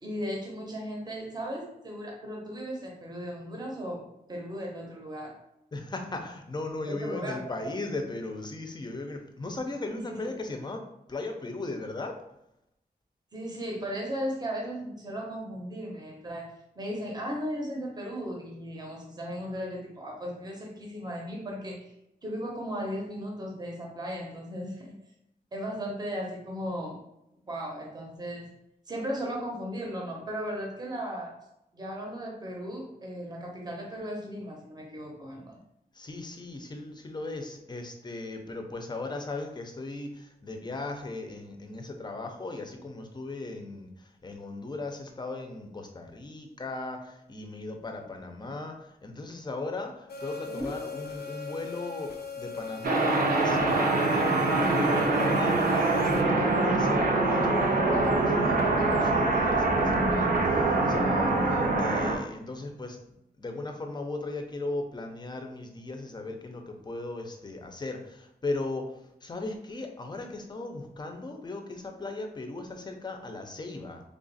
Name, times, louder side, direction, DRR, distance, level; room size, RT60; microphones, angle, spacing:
voice 1, 0.0-4.0 4.3-5.3 6.9-7.7 9.9-10.3 13.3-21.9 22.2-24.9 25.5-27.0 27.5-28.5 28.9-31.3 31.7-35.6 50.5-50.7 61.7-62.1, equal, 25° right, -1 dB, 0.8 m, -36 dB
voice 2, 5.7-10.8 11.1-12.2 35.9-63.0 63.4-74.0, left 2 dB, 25° left, 4 dB, 0.5 m, -37 dB
sound 1, 50.1-56.2, left 5 dB, 75° left, 0.5 m, -41 dB
sound 2, 52.8-62.1, right 2 dB, 60° right, 0.7 m, -24 dB
3.4 x 2.4 x 3.9 m, 0.83 s
wide cardioid pair, 150°, 16 cm